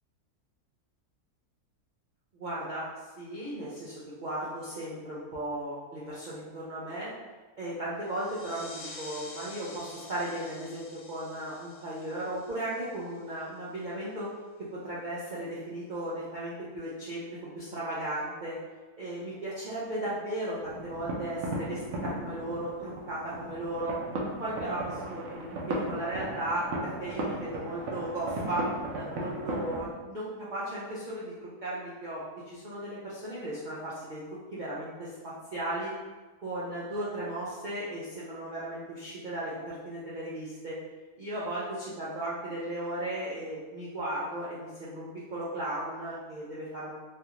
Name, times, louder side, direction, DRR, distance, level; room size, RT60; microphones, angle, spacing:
voice 1, 2.3-2.8 3.2-7.1 7.6-14.3 14.8-17.2 17.5-18.6 19.0-24.0 24.4-28.6 28.9-32.2 32.5-34.2 34.5-35.9 36.4-40.8 41.2-46.9, right 1 dB, 85° right, -9 dB, 0.4 m, -36 dB
sound 1, 8.0-13.4, left 3 dB, 85° left, 1.1 m, -48 dB
sound 2, 20.6-29.9, right 1 dB, 65° right, 0.8 m, -36 dB
3.4 x 2.4 x 2.8 m, 1.3 s
omnidirectional pair, 1.6 m